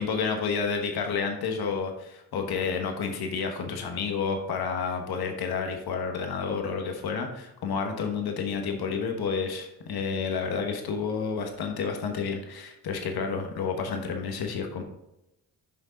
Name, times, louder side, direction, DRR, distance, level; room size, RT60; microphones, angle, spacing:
voice 1, 0.0-14.8, left 5 dB, 85° left, 4 dB, 1.2 m, -30 dB
7.0 x 5.4 x 3.8 m, 0.87 s
cardioid pair, 60°, 37 cm